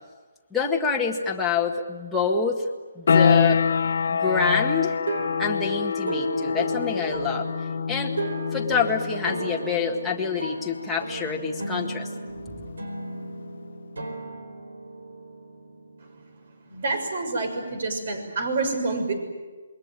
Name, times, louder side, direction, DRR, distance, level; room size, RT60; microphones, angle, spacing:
voice 1, 0.5-2.6 3.0-3.6 4.1-5.0 5.4-7.5 7.9-8.1 8.5-12.1, left 5 dB, 5° left, -4 dB, 1.8 m, -26 dB
sound 1, 3.1-13.6, left 6 dB, 60° left, 0.8 m, -26 dB
sound 2, 5.1-16.5, right 2 dB, 85° right, 4.6 m, -35 dB
voice 2, 16.7-19.1, right 3 dB, 50° right, 7 dB, 6.5 m, -27 dB
27.5 x 22.0 x 9.0 m, 1.3 s
hypercardioid pair, 165°, 0 cm